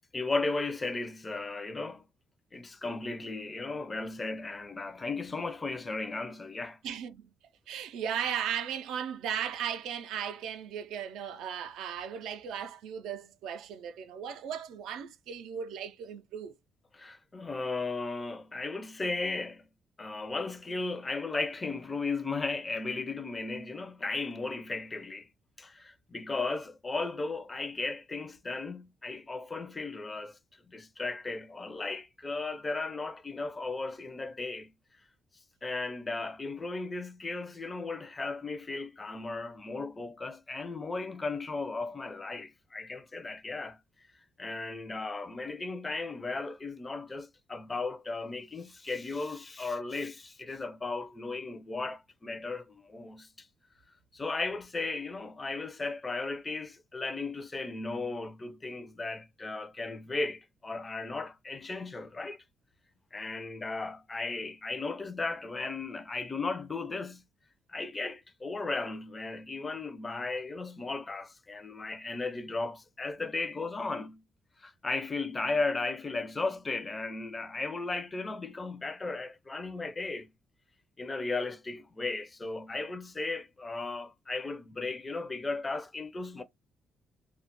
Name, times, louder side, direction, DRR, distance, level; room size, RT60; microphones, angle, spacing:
voice 1, 0.1-2.0 2.5-6.8 16.9-19.6 20.0-25.3 25.6-30.4 30.7-34.7 35.6-43.8 44.4-53.5 54.1-62.4 63.1-67.2 67.7-74.2 74.6-80.3 81.0-86.4, left 3 dB, 25° left, 0.4 m, -35 dB
voice 2, 6.8-7.3 7.7-16.5, right 8 dB, 85° right, 0.3 m, -36 dB
2.2 x 2.1 x 2.8 m
cardioid pair, 90°, 0 cm